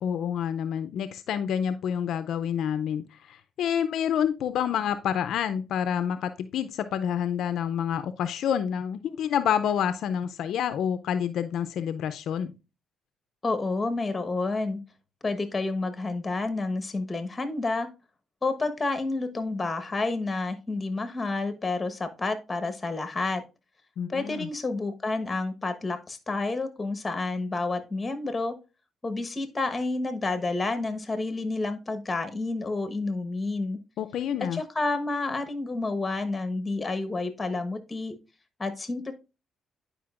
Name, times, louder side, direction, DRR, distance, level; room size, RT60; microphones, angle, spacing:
voice 1, 0.0-12.5 24.0-24.5 34.0-34.6, left 8 dB, 75° left, 10 dB, 0.5 m, -28 dB
voice 2, 13.4-14.8 15.2-17.9 18.4-23.4 24.1-28.6 29.0-33.8 34.5-38.1 38.6-39.1, left 3 dB, 20° left, 9 dB, 1.1 m, -29 dB
10.0 x 5.0 x 2.4 m, 0.29 s
cardioid pair, 90°, 0 cm